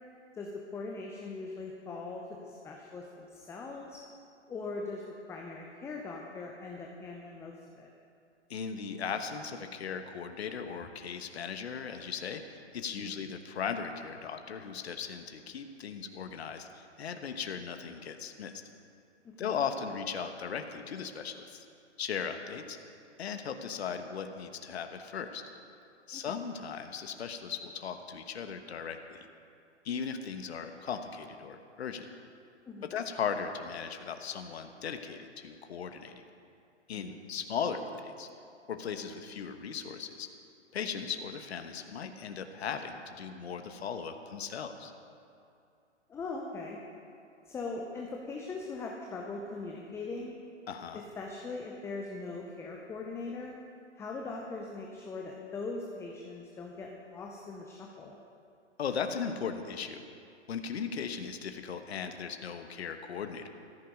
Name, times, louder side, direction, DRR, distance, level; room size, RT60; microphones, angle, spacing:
voice 1, 0.3-4.0 4.5-5.0 5.3-7.9 12.9-13.1 19.4-19.5 26.1-26.4 32.7-32.9 36.9-37.2 46.1-46.8 47.4-50.4 50.9-53.6 54.0-58.2, left 3 dB, 5° left, 0 dB, 0.7 m, -41 dB
voice 2, 8.5-18.6 19.4-21.6 22.0-22.8 23.2-25.4 26.1-29.3 29.8-32.0 32.8-36.2 36.9-38.3 38.7-40.3 40.7-44.9 50.7-51.0 58.8-60.0 60.5-63.5, left 6 dB, 60° left, 7 dB, 1.3 m, -37 dB
14.0 x 14.0 x 5.3 m, 2.5 s
figure-of-eight pair, 120°, 36 cm